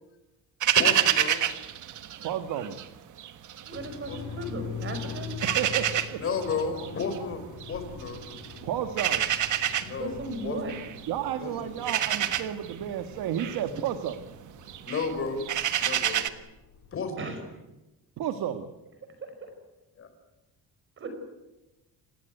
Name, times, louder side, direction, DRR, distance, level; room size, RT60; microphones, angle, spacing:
sound 1, 0.6-2.9 3.2-4.5 4.8-16.3, right 11 dB, 55° right, 1.5 m, -29 dB
voice 1, 0.8-1.4 4.1-4.2 6.2-8.2 9.9-10.1 10.4-10.6 11.4-11.6 14.9-15.4 15.8-16.3 16.9-17.1 20.0-20.1, left 5 dB, 35° left, 7 dB, 4.7 m, -32 dB
voice 2, 2.2-2.8 5.4-6.2 8.6-9.4 11.1-14.3 18.2-18.7, right 10 dB, 70° right, 8 dB, 1.7 m, -32 dB
voice 3, 3.6-5.3 9.8-10.7 17.2-17.4 19.2-19.5 21.0-21.1, right 2 dB, 35° right, 7 dB, 5.3 m, -36 dB
sound 2, 3.7-16.9, left 6 dB, 50° left, 4.0 m, -44 dB
29.0 x 17.0 x 9.3 m, 1.0 s
cardioid pair, 180°, 37 cm